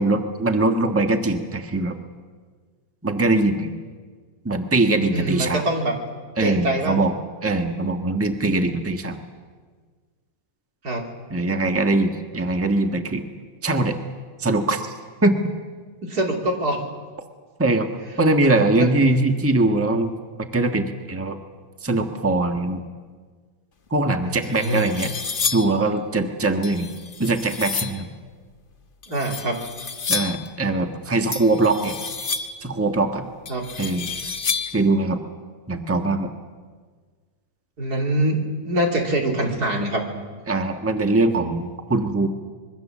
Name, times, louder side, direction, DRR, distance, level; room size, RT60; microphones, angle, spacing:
voice 1, 0.0-2.0 3.0-3.7 4.4-5.6 6.4-7.1 7.4-9.2 11.3-13.2 13.6-13.9 14.4-14.9 15.2-15.4 17.6-17.9 18.2-20.1 20.5-21.4 21.8-22.8 23.9-25.1 25.5-26.9 27.2-28.1 30.1-32.0 32.6-33.2 33.8-34.1 34.6-35.2 35.7-36.3 40.5-42.3, right 2 dB, 10° right, 5 dB, 1.3 m, -21 dB
voice 2, 5.1-6.0 6.4-7.1 10.8-11.1 16.0-16.8 18.4-18.9 24.3-24.9 29.1-29.6 33.5-33.7 37.8-40.0, right 1 dB, 85° right, 1 dB, 3.6 m, -24 dB
sound 1, 23.9-24.0 24.4-25.8 26.6-28.0 29.0-30.5 31.3-32.7 33.4-34.9, left 5 dB, 40° left, 1.2 m, -30 dB
26.0 x 22.5 x 7.4 m, 1.5 s
omnidirectional pair, 1.6 m